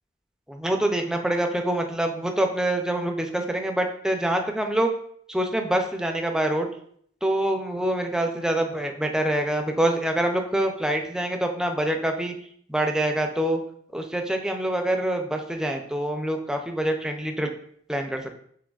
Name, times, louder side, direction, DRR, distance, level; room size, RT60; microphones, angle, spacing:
voice 1, 0.5-4.9 5.3-6.7 7.2-12.3 12.7-13.6 13.9-17.5 17.9-18.4, right 1 dB, 5° right, 4 dB, 0.4 m, -25 dB
6.1 x 3.3 x 2.3 m, 0.63 s
head